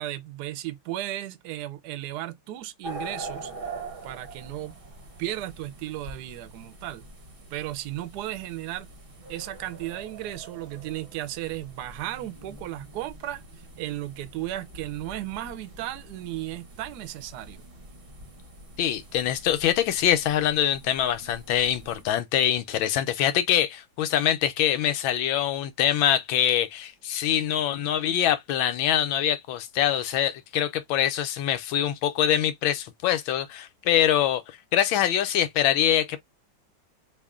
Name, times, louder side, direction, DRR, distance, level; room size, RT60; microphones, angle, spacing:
voice 1, 0.0-3.5 4.0-4.8 5.2-7.1 7.5-8.9 9.3-13.4 13.8-17.7, right 14 dB, 70° right, 1.0 m, -35 dB
sound 1, 2.8-22.0, right 2 dB, 40° right, 0.8 m, -44 dB
voice 2, 18.8-34.4 34.7-36.2, left 10 dB, 90° left, 1.5 m, -24 dB
3.7 x 2.4 x 3.5 m
omnidirectional pair, 2.1 m